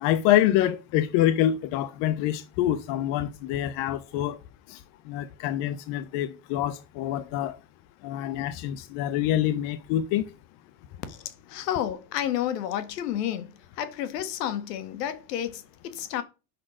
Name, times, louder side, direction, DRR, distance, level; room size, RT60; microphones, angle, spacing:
voice 1, 0.0-4.4 4.7-4.8 5.1-7.6 8.0-10.3, left 12 dB, 60° left, 0.9 m, -26 dB
voice 2, 11.5-16.2, left 11 dB, 80° left, 1.5 m, -31 dB
6.6 x 6.0 x 4.9 m
supercardioid pair, 100°, 48 cm